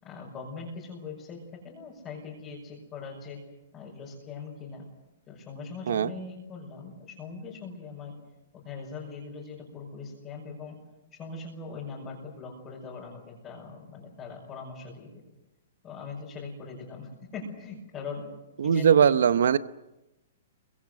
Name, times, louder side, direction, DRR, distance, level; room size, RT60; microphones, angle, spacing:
voice 1, 0.0-3.4 3.7-4.9 5.3-8.1 8.5-10.8 11.2-15.1 15.8-18.2 18.6-19.1, left 4 dB, 15° left, -4 dB, 5.5 m, -41 dB
voice 2, 18.6-19.6, right 8 dB, 70° right, 14 dB, 0.8 m, -20 dB
29.0 x 24.0 x 6.5 m, 0.98 s
hypercardioid pair, 165°, 0 cm